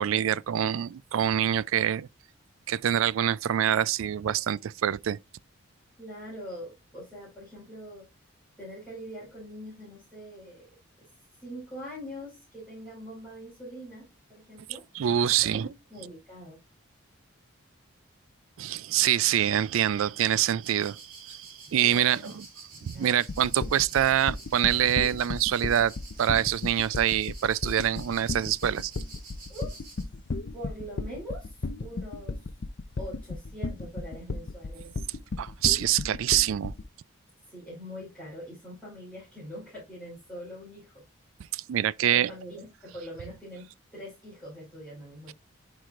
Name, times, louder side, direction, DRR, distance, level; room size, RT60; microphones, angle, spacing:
voice 1, 0.0-2.1 2.7-5.2 14.9-15.7 18.6-22.4 22.9-25.9 26.2-28.9 34.8-34.9 35.4-36.7 41.5-42.3, right 10 dB, 70° right, 0.3 m, -25 dB
voice 2, 6.0-8.0 8.6-10.7 11.4-14.8 15.4-16.6 21.7-22.3 22.9-23.1 29.5-29.9 30.5-32.5 33.0-34.9 37.5-41.0 42.1-42.7 42.9-43.6 43.9-45.3, equal, 5° left, 4.6 m, -43 dB
sound 1, 20.6-30.0, right 3 dB, 40° right, 3.0 m, -49 dB
sound 2, 23.3-36.9, left 3 dB, 50° left, 0.5 m, -34 dB
10.0 x 4.7 x 2.4 m
head